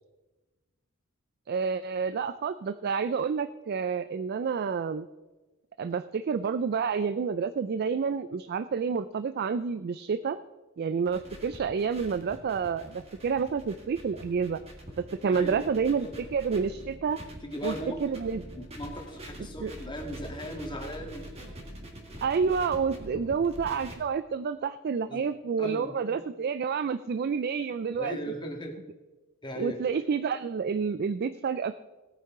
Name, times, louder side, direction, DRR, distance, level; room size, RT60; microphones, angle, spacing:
voice 1, 1.5-5.1 5.8-10.4 10.8-14.6 15.0-17.2 17.6-17.7 18.0-18.4 19.6-19.7 22.2-28.2 29.6-31.7, right 6 dB, 45° right, 12 dB, 0.3 m, -29 dB
sound 1, 11.0-24.0, equal, 30° right, 1.8 m, -45 dB
voice 2, 15.2-15.7 16.0-16.1 17.4-18.0 18.6-21.2 23.1-23.2 25.1-25.2 25.6-25.9 28.0-28.7 29.4-29.8, equal, 20° left, 2 dB, 1.8 m, -37 dB
18.0 x 9.1 x 3.7 m, 1.2 s
head